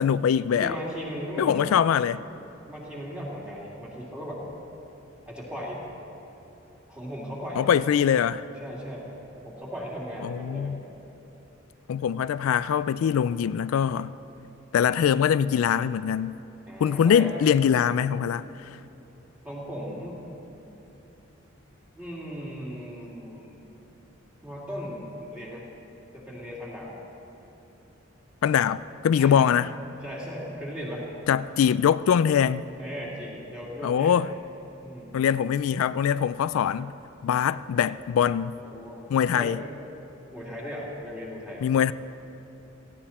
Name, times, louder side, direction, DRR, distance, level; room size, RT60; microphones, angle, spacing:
voice 1, 0.0-0.8 1.4-2.2 7.6-8.4 10.2-10.8 11.9-14.1 14.7-16.4 16.8-18.7 28.4-29.7 31.3-32.6 33.8-34.3 35.1-36.9 37.2-38.5 39.1-39.6 41.6-41.9, left 8 dB, 90° left, 0.3 m, -23 dB
voice 2, 0.5-1.7 2.7-4.4 5.3-5.9 6.9-7.7 8.6-9.1 9.4-10.8 16.7-17.4 19.4-20.2 21.9-23.6 24.4-25.6 26.1-26.9 29.1-29.5 30.0-31.0 32.8-34.2 34.8-35.2 38.6-39.0 39.3-39.6 40.3-41.7, equal, 5° right, 2.8 m, -37 dB
17.5 x 15.5 x 4.3 m
head